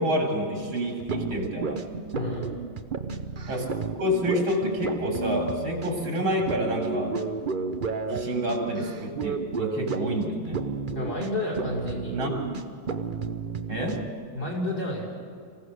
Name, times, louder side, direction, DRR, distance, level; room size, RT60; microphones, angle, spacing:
voice 1, 0.0-1.8 3.5-3.7 4.0-7.1 8.1-10.6 12.1-12.3 13.7-14.1, equal, 90° right, 0 dB, 4.2 m, -28 dB
sound 1, 0.5-14.1, right 4 dB, 50° right, 0.5 m, -32 dB
voice 2, 2.1-2.5 10.9-12.1 14.3-15.1, left 2 dB, 60° left, -3 dB, 6.4 m, -31 dB
25.0 x 16.0 x 6.5 m, 2.3 s
omnidirectional pair, 2.2 m